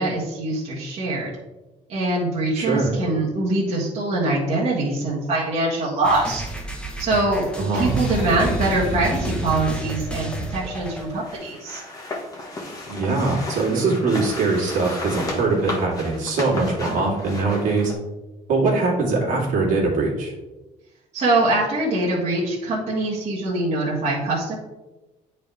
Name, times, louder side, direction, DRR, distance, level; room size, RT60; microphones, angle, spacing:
voice 1, 0.0-1.3 1.9-6.4 7.0-11.8 21.1-24.6, right 2 dB, 50° right, -7 dB, 1.7 m, -23 dB
voice 2, 2.5-2.9 7.6-8.0 12.9-17.9 18.5-20.3, right 3 dB, 70° right, -3 dB, 2.2 m, -22 dB
sound 1, 6.0-11.3, right 2 dB, 5° left, 1.0 m, -32 dB
Boom, 7.8-10.5, equal, 70° left, 1.8 m, -30 dB
sound 2, 10.7-17.9, left 2 dB, 25° left, 1.5 m, -33 dB
9.2 x 4.3 x 3.4 m, 1.1 s
cardioid pair, 130°, 14 cm